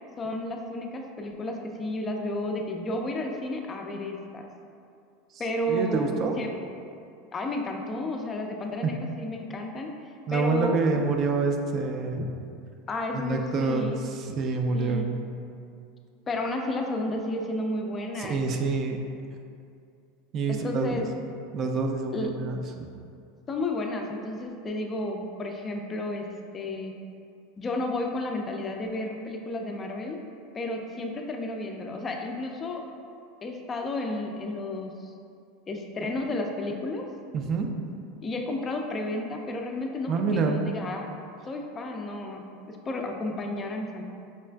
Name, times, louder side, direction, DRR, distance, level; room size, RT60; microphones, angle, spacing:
voice 1, 0.2-4.5 5.4-6.5 7.3-10.8 12.9-14.0 14.7-15.1 16.3-18.4 20.5-21.1 22.1-22.3 23.5-26.3 26.5-26.9 27.6-30.2 30.5-32.8 33.4-35.1 35.7-37.1 38.2-41.1 41.5-44.0, left 2 dB, 25° left, 2 dB, 0.4 m, -32 dB
voice 2, 5.7-6.4 8.8-8.9 10.3-12.3 13.1-15.2 18.2-19.0 20.3-21.0 21.5-22.9 37.3-37.7 40.1-40.6, right 4 dB, 45° right, 4 dB, 0.4 m, -27 dB
5.3 x 2.4 x 2.2 m, 2.4 s
hypercardioid pair, 105°, 0 cm